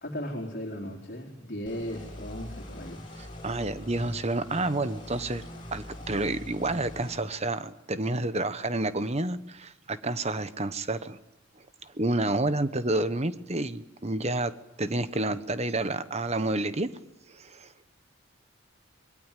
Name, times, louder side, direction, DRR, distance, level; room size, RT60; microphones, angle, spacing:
voice 1, 0.0-3.0, equal, 45° left, -1 dB, 4.0 m, -36 dB
sound 1, 1.7-7.2, left 1 dB, 25° left, 7.9 m, -43 dB
voice 2, 3.1-5.4 5.7-11.2 11.8-14.5 14.8-16.9 17.3-17.7, right 2 dB, 30° right, 12 dB, 1.2 m, -29 dB
27.0 x 22.0 x 9.2 m, 0.88 s
head